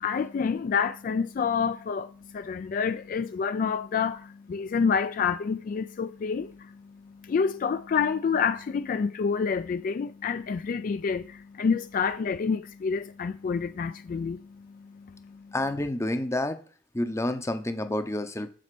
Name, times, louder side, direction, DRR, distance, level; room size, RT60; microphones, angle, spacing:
voice 1, 0.0-6.8 7.2-15.4, left 6 dB, 50° left, 0.3 m, -28 dB
voice 2, 15.5-16.6 16.9-18.5, left 1 dB, 15° left, 0.7 m, -29 dB
7.6 x 4.1 x 6.7 m
head